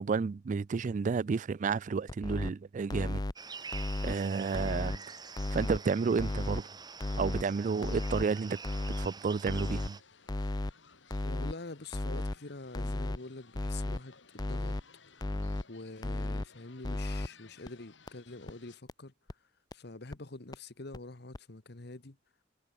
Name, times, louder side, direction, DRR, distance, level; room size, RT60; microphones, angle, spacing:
voice 1, 0.0-3.2 3.7-3.8 4.0-5.2 5.5-6.7 7.2-8.6 9.0-10.0, right 5 dB, 45° right, 0.3 m, -31 dB
sound 1, 2.1-2.5 2.9-3.3 3.7-4.1 4.5-5.0 5.4-5.8 6.2-6.6 7.0-7.4 7.8-8.3 8.6-9.1 9.5-9.9 10.3-10.7 11.1-11.5 11.9-12.4 12.7-13.2 13.5-14.0 14.4-14.8 15.2-15.6 16.0-16.5 16.8-17.3 17.7-17.8 18.1-18.2 18.5-18.6 18.9-19.0 19.3-19.4 19.7-19.8 20.1-20.2 20.5-20.6 20.9-21.0 21.3-21.4, left 1 dB, 20° left, 0.6 m, -34 dB
sound 2, 3.4-10.0, right 5 dB, 25° right, 2.5 m, -46 dB
sound 3, 9.9-18.8, left 5 dB, 80° left, 2.9 m, -60 dB
voice 2, 11.2-14.8 15.7-19.1 19.7-22.2, left 2 dB, 60° left, 1.4 m, -46 dB
head